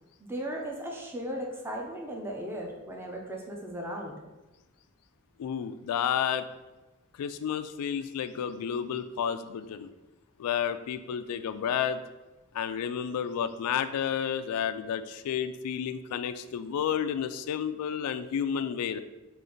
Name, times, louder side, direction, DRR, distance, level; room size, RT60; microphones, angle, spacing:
voice 1, 0.2-4.1, equal, 10° right, -1 dB, 0.5 m, -36 dB
voice 2, 5.4-6.5 7.2-9.9 10.4-12.0 12.5-19.0, left 8 dB, 90° left, 14 dB, 0.3 m, -31 dB
5.0 x 2.5 x 3.8 m, 1.1 s
head